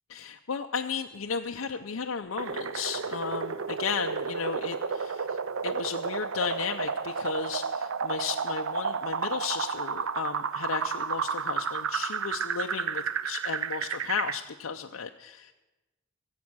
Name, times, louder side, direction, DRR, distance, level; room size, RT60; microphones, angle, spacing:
voice 1, 0.1-15.5, left 6 dB, 85° left, 3 dB, 0.6 m, -34 dB
sound 1, 2.4-14.4, right 6 dB, 90° right, 0.6 m, -32 dB
22.5 x 8.3 x 6.2 m, 1.1 s
head